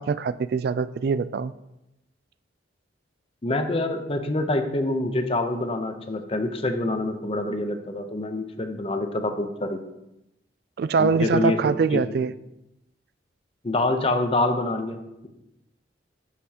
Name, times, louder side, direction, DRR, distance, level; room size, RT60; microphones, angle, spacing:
voice 1, 0.0-1.5 10.8-12.3, right 5 dB, 55° right, 16 dB, 0.3 m, -23 dB
voice 2, 3.4-9.8 11.0-12.0 13.6-15.3, left 2 dB, 30° left, 6 dB, 0.7 m, -26 dB
10.5 x 6.7 x 2.9 m, 0.90 s
head